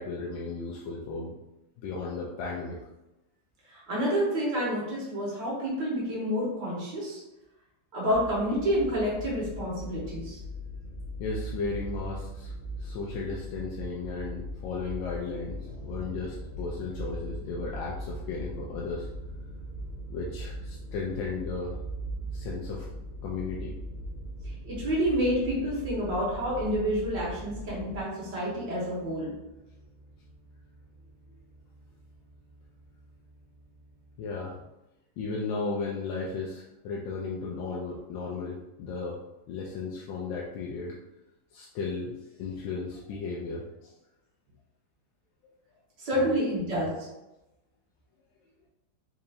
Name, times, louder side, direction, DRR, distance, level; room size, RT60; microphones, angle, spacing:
voice 1, 0.0-1.4 1.8-2.8 11.2-19.1 20.1-21.8 22.3-22.9 23.2-23.8 34.2-34.6 35.2-39.2 39.5-41.0 41.5-43.9 45.4-45.5 46.1-46.4, left 4 dB, 85° left, -4 dB, 1.3 m, -35 dB
voice 2, 3.7-7.2 7.9-10.4 24.7-29.3 46.0-47.1, equal, 70° right, -5 dB, 1.7 m, -29 dB
sound 1, 8.1-28.0, right 1 dB, 45° right, 1.1 m, -39 dB
sound 2, 15.6-34.6, equal, 50° left, 1.3 m, -52 dB
4.2 x 2.8 x 2.6 m, 0.97 s
omnidirectional pair, 2.0 m